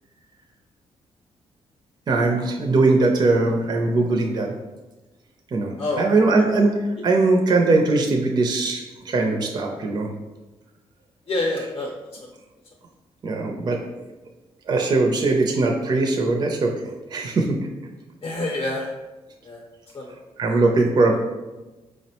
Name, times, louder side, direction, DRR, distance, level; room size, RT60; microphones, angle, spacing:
voice 1, 2.1-4.5 5.5-10.1 13.2-13.8 14.7-16.7 17.1-17.6 20.4-21.2, right 3 dB, 40° right, 1 dB, 0.4 m, -20 dB
voice 2, 11.3-11.9 18.2-18.9 19.4-19.6 19.9-20.1, left 2 dB, 45° left, -2 dB, 0.6 m, -26 dB
4.7 x 2.1 x 2.8 m, 1.1 s
cardioid pair, 100°, 11 cm